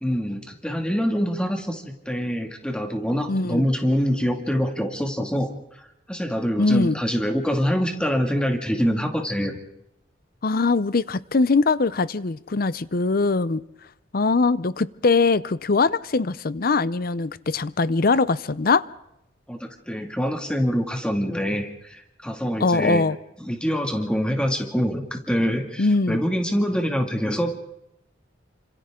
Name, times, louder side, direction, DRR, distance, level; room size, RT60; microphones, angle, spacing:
voice 1, 0.0-5.5 6.1-9.6 19.5-23.0 23.4-27.5, equal, 5° left, 3 dB, 2.3 m, -25 dB
voice 2, 3.3-3.7 6.6-7.0 10.4-13.6 14.1-18.8 22.6-23.2 25.8-26.2, left 3 dB, 55° left, 17 dB, 0.7 m, -21 dB
29.0 x 26.5 x 3.8 m, 0.84 s
head